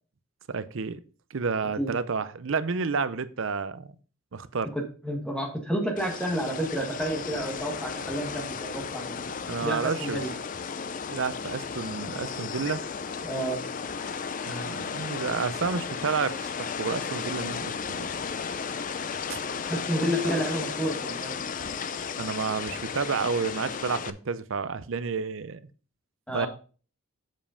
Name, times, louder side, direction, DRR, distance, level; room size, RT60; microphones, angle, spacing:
voice 1, 0.5-1.0 1.3-3.9 4.3-4.7 9.3-10.2 11.1-12.8 14.5-18.1 19.3-19.4 22.2-25.6 26.3-26.5, right 5 dB, 60° right, 0.5 m, -30 dB
voice 2, 4.7-9.2 9.6-10.3 13.2-13.6 19.7-21.3 26.3-26.5, equal, 5° left, 1.5 m, -30 dB
sound 1, 6.0-24.1, left 6 dB, 35° left, 0.4 m, -34 dB
7.5 x 5.3 x 5.0 m
head